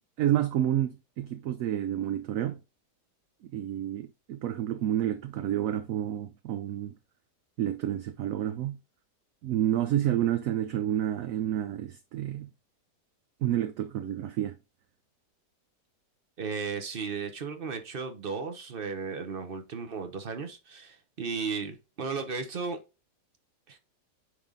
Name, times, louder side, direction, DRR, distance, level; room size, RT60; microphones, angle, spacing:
voice 1, 0.2-2.6 3.5-6.9 7.6-8.8 9.4-12.5 13.4-14.5, right 11 dB, 70° right, 0.8 m, -29 dB
voice 2, 16.4-22.8 23.7-23.8, right 5 dB, 40° right, 0.9 m, -35 dB
9.7 x 3.6 x 3.8 m
omnidirectional pair, 1.9 m